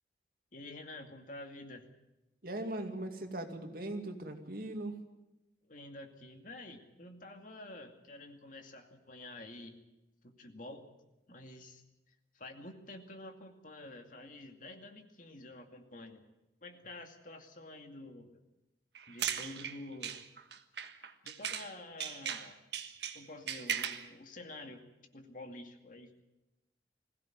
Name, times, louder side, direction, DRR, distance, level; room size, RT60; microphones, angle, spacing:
voice 1, 0.5-1.9 5.7-9.8 10.2-10.9 11.3-11.8 12.1-16.2 16.6-18.4 19.1-20.2 21.2-22.6 23.1-24.8 25.1-26.1, left 2 dB, 50° left, 4 dB, 2.4 m, -49 dB
voice 2, 2.4-5.0, right 1 dB, 55° right, 5 dB, 2.5 m, -39 dB
sound 1, 18.9-21.7 22.0-24.1, right 8 dB, 70° right, 1.5 m, -38 dB
21.5 x 16.5 x 9.3 m, 0.97 s
head